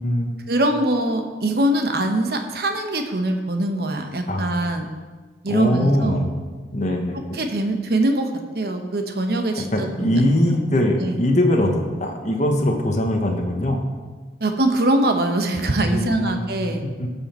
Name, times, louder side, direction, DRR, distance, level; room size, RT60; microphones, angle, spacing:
voice 1, 0.5-4.9 5.4-6.3 7.3-10.2 11.0-11.2 14.4-16.8, right 1 dB, 55° right, 5 dB, 0.9 m, -23 dB
voice 2, 4.3-4.7 5.5-6.3 6.7-7.4 9.6-13.8 15.9-16.4 17.0-17.1, left 1 dB, 40° left, 3 dB, 1.1 m, -21 dB
15.0 x 5.5 x 4.4 m, 1.4 s
head